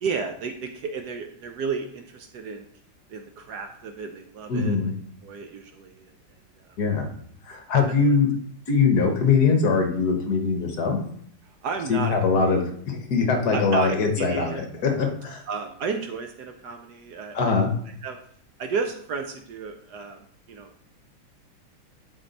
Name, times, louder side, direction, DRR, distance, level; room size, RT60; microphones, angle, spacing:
voice 1, 0.0-2.7 3.1-4.8 5.2-6.1 8.0-8.1 11.6-12.1 12.4-12.6 13.5-14.7 15.5-17.4 18.0-18.2 18.6-20.2 20.5-20.7, right 5 dB, 65° right, 6 dB, 1.1 m, -32 dB
voice 2, 4.5-4.9 6.8-7.1 7.4-8.3 8.7-11.0 11.9-15.4 17.3-17.7, left 5 dB, 55° left, 4 dB, 1.5 m, -22 dB
10.5 x 4.3 x 4.1 m, 0.63 s
omnidirectional pair, 2.1 m